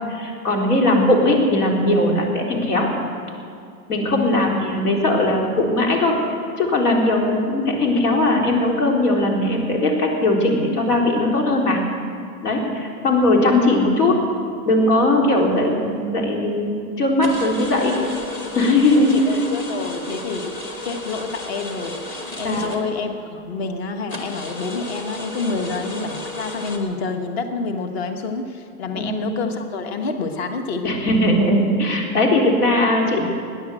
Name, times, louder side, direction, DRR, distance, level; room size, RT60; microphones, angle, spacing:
voice 1, 0.1-2.9 3.9-6.2 6.6-11.8 12.4-14.2 14.6-18.0 18.5-19.2 22.4-22.8 25.5-25.7 28.9-29.1 30.8-33.2, left 1 dB, 80° left, 0 dB, 3.9 m, -19 dB
voice 2, 4.0-4.6 18.9-20.5 20.8-30.9, left 4 dB, 40° left, 6 dB, 1.4 m, -28 dB
sound 1, 17.2-23.3 23.6-23.7 24.1-26.8, left 2 dB, 20° left, 1.1 m, -33 dB
18.0 x 10.0 x 7.7 m, 2.3 s
supercardioid pair, 170°, 47 cm